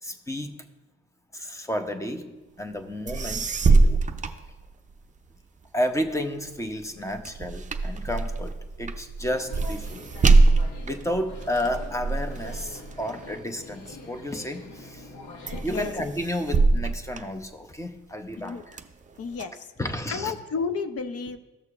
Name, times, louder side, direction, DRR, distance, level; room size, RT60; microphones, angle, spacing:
voice 1, 0.0-0.6 1.3-4.0 5.7-10.1 10.8-15.1 15.6-18.8 19.8-20.3, left 1 dB, 10° left, 6 dB, 0.8 m, -32 dB
sound 1, 2.8-2.9 3.1-5.2 5.6-14.3 14.8-15.2 15.5-18.0 18.4-19.4, right 3 dB, 25° right, 0.5 m, -24 dB
sound 2, 9.2-15.6, left 2 dB, 90° left, 1.2 m, -44 dB
voice 2, 15.6-15.9 18.4-18.6 19.2-19.7 20.1-21.4, left 5 dB, 50° left, 10 dB, 0.7 m, -31 dB
14.5 x 6.3 x 2.5 m, 1.1 s
cardioid pair, 90°, 30 cm